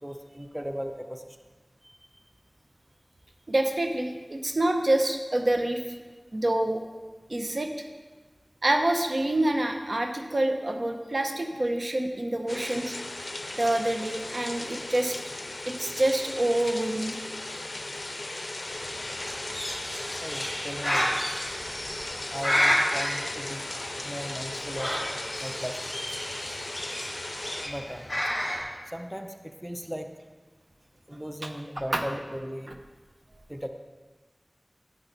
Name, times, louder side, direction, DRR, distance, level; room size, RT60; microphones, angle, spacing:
voice 1, 0.0-1.4 1.8-2.0 20.2-21.3 22.3-23.7 24.0-25.8 27.6-28.1 28.9-30.1 31.1-32.7 33.5-33.7, equal, 10° right, 6 dB, 0.7 m, -37 dB
voice 2, 3.5-5.8 6.3-6.8 7.3-7.7 8.6-13.0 13.5-15.2 15.7-17.2 26.3-26.4 31.9-32.0, right 1 dB, 65° right, 4 dB, 0.9 m, -26 dB
sound 1, 12.5-27.7, left 2 dB, 55° left, 0.6 m, -37 dB
Bird, 18.7-28.6, equal, 20° left, 3.4 m, -31 dB
9.9 x 8.6 x 4.0 m, 1.3 s
wide cardioid pair, 45°, 0 cm